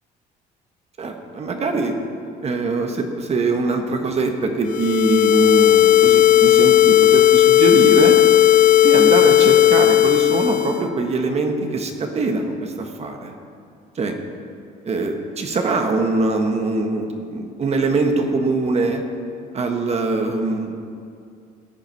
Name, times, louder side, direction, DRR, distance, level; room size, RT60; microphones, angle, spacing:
voice 1, 1.0-1.9 2.4-8.2 8.8-13.3 13.9-14.2 14.8-19.0 19.5-20.8, right 3 dB, 40° right, 4 dB, 1.3 m, -22 dB
sound 1, 4.7-10.8, left 13 dB, 50° left, 0.7 m, -14 dB
17.0 x 8.1 x 4.6 m, 2.4 s
cardioid pair, 110°, 17 cm